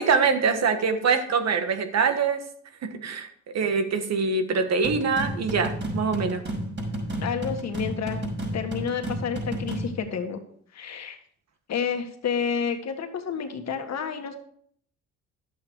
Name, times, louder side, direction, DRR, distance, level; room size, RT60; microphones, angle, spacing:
voice 1, 0.0-2.4 2.8-3.3 3.5-6.4, right 5 dB, 60° right, 7 dB, 1.6 m, -24 dB
sound 1, 4.8-10.0, right 1 dB, 35° right, 5.8 m, -31 dB
voice 2, 7.2-8.2 8.5-10.4 10.7-11.2 11.7-14.3, left 7 dB, 60° left, 5 dB, 1.8 m, -30 dB
11.5 x 8.3 x 4.6 m, 0.63 s
cardioid pair, 90°, 30 cm